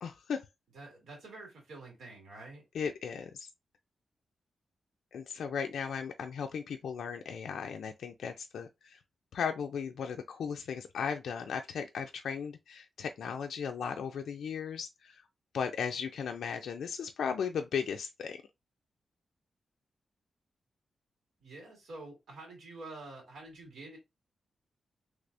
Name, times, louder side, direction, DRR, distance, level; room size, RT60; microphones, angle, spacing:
voice 1, 0.0-0.4 2.7-3.5 5.1-9.0 9.3-15.2 15.5-18.4, left 6 dB, 90° left, 0.3 m, -36 dB
voice 2, 0.7-2.6 21.4-24.0, right 2 dB, 85° right, 2.0 m, -48 dB
3.3 x 3.1 x 2.5 m
wide cardioid pair, 160°, 0 cm